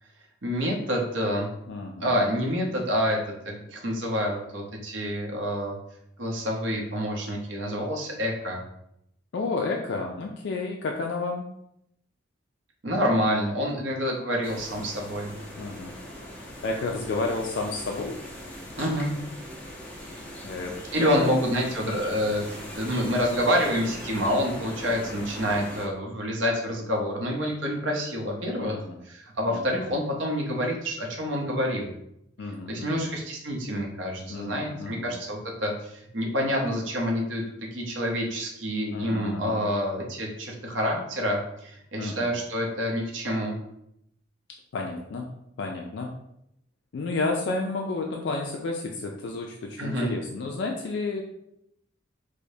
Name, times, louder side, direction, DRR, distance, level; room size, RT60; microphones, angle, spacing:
voice 1, 0.4-1.5 2.0-3.2 3.4-5.8 6.2-8.6 12.8-15.3 18.8-19.1 20.9-28.8 29.0-31.9 32.7-37.4 37.7-43.6 49.8-50.1, equal, 75° right, 0 dB, 0.8 m, -27 dB
voice 2, 1.7-2.2 9.3-11.5 15.6-16.0 16.6-18.2 20.4-21.3 28.6-29.0 29.5-29.8 32.4-33.0 34.3-35.1 38.9-39.6 42.0-42.3 44.7-45.3 45.6-46.1 46.9-51.2, left 3 dB, 65° left, 1 dB, 0.4 m, -31 dB
sound 1, 14.4-25.9, equal, 5° left, 0.6 m, -40 dB
4.8 x 2.1 x 2.7 m, 0.77 s
head